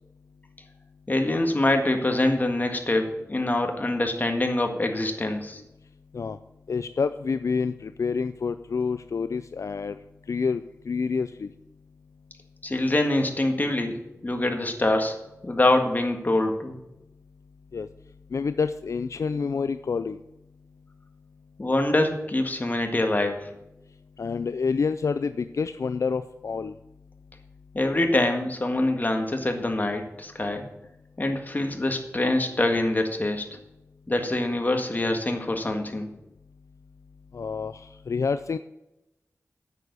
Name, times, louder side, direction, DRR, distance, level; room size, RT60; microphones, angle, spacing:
voice 1, 1.1-5.6 12.6-14.0 14.2-15.2 15.4-16.7 21.6-23.5 27.7-30.7 31.2-33.5 34.1-36.1, left 2 dB, 30° left, 4 dB, 1.8 m, -25 dB
voice 2, 6.7-10.0 10.3-11.5 17.7-17.9 18.3-20.2 24.2-26.7 37.3-38.6, left 5 dB, 70° left, 12 dB, 0.4 m, -28 dB
9.0 x 6.9 x 8.3 m, 0.93 s
wide cardioid pair, 80°, 5 cm